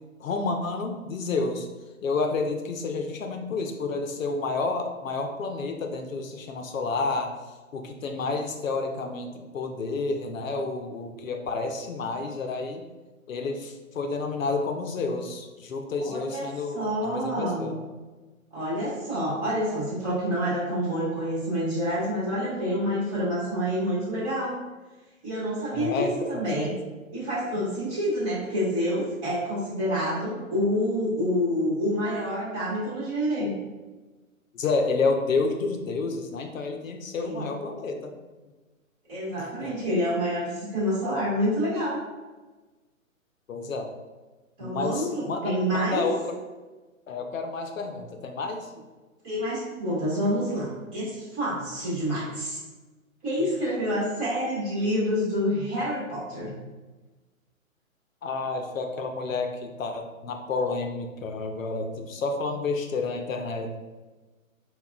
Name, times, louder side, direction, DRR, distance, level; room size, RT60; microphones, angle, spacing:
voice 1, 0.2-1.7 2.0-7.3 7.7-12.8 13.3-17.8 25.7-26.7 34.5-38.1 39.4-39.7 43.5-43.9 44.6-46.3 47.1-48.7 53.4-53.6 58.2-63.8, left 3 dB, 70° left, 4 dB, 0.6 m, -30 dB
voice 2, 16.0-16.5 16.7-17.7 18.5-24.6 25.2-26.8 27.1-33.6 37.2-37.5 39.1-42.0 44.6-46.1 49.2-52.6 53.2-56.5, equal, 25° right, -8 dB, 1.4 m, -28 dB
5.5 x 2.3 x 2.3 m, 1.2 s
hypercardioid pair, 145°, 42 cm